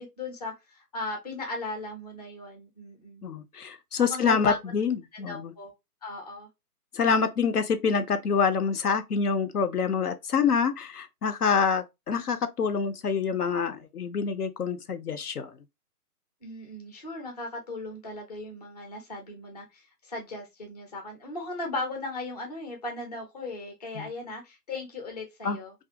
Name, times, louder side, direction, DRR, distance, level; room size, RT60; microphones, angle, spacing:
voice 1, 0.0-3.2 4.0-4.6 5.1-5.7 6.0-6.5 16.4-25.7, left 2 dB, 25° left, 0.5 m, -37 dB
voice 2, 3.2-5.5 6.9-15.5 24.0-24.1 25.4-25.6, left 6 dB, 70° left, 0.6 m, -26 dB
2.4 x 2.3 x 2.5 m
figure-of-eight pair, 135°, 48 cm